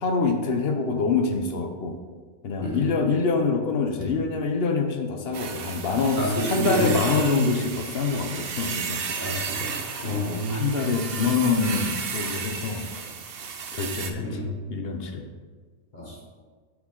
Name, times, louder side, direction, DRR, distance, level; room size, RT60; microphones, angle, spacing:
voice 1, 0.0-2.0 2.4-9.0 10.0-12.9 13.7-15.3, left 4 dB, 55° left, 5 dB, 0.7 m, -25 dB
sound 1, 5.3-14.1, right 5 dB, 55° right, 0.7 m, -33 dB
voice 2, 6.2-7.0 9.1-9.8 10.0-10.7 14.2-14.5 15.9-16.2, left 1 dB, 35° left, -4 dB, 1.1 m, -29 dB
6.3 x 6.2 x 3.8 m, 1.5 s
omnidirectional pair, 1.6 m